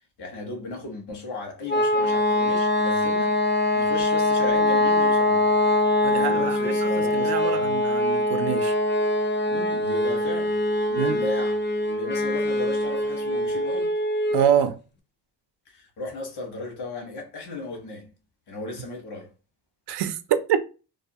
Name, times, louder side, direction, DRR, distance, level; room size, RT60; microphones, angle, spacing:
voice 1, 0.2-3.4 3.7-5.6 5.9-7.7 9.5-10.6 10.9-13.9 15.7-18.1 18.5-19.3, left 2 dB, 80° left, 1.1 m, -35 dB
sound 1, 1.7-14.5, left 1 dB, 30° left, 0.4 m, -23 dB
voice 2, 6.0-6.4 7.1-8.7 11.0-11.2 14.3-14.8 19.9-20.2 20.5-20.7, right 9 dB, 80° right, 0.5 m, -25 dB
2.6 x 2.3 x 2.7 m
cardioid pair, 120°, 40 cm